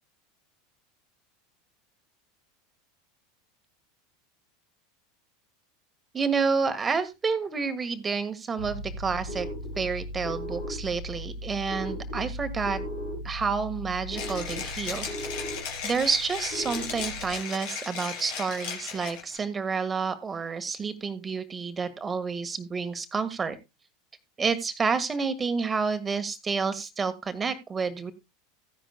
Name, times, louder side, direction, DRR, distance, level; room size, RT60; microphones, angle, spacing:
voice 1, 6.1-9.5 9.8-12.8 13.2-15.4 15.8-23.6 24.4-28.1, right 5 dB, 20° right, 11 dB, 1.5 m, -29 dB
sound 1, 8.6-17.3, equal, 85° left, 5.0 m, -37 dB
Mechanisms, 14.1-19.4, left 6 dB, 55° left, 3.8 m, -36 dB
15.5 x 10.5 x 2.2 m, 0.23 s
figure-of-eight pair, 80°, 0 cm